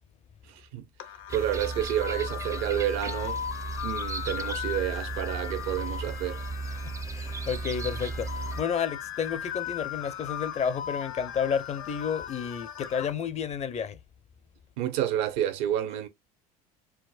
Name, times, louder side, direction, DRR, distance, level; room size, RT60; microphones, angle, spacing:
voice 1, 0.5-0.8 1.3-3.4 3.8-6.4 14.8-16.1, right 11 dB, 70° right, 0.8 m, -29 dB
sound 1, 1.0-13.1, left 10 dB, 65° left, 0.8 m, -38 dB
sound 2, 1.3-8.6, right 3 dB, 15° right, 0.3 m, -36 dB
voice 2, 6.8-14.0, left 7 dB, 35° left, 0.6 m, -31 dB
4.5 x 2.0 x 2.4 m
hypercardioid pair, 75°, 20 cm